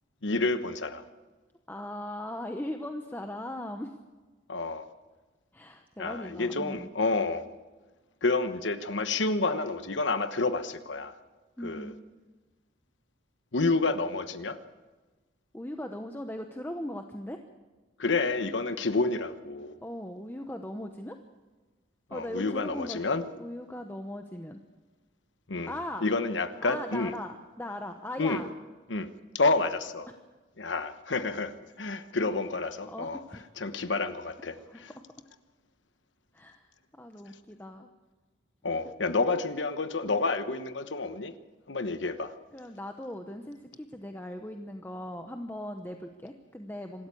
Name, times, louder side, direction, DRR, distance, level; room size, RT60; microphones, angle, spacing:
voice 1, 0.2-1.0 4.5-4.9 6.0-7.4 8.2-11.1 11.6-11.9 13.5-14.6 18.0-19.7 22.1-23.2 25.5-25.7 26.0-27.1 28.2-28.4 28.9-29.1 29.3-30.1 30.6-31.5 31.8-33.2 33.6-34.9 38.6-41.3 41.7-42.3, left 3 dB, 80° left, 11 dB, 1.2 m, -29 dB
voice 2, 1.7-3.9 5.5-6.9 11.6-12.0 15.5-17.4 19.8-21.2 22.1-23.0 23.4-24.6 25.7-26.1 26.6-28.5 32.9-33.5 34.6-34.9 36.3-36.7 36.9-37.9 38.8-39.0 42.5-47.1, left 1 dB, 10° left, 5 dB, 0.9 m, -39 dB
26.0 x 13.0 x 8.5 m, 1.3 s
head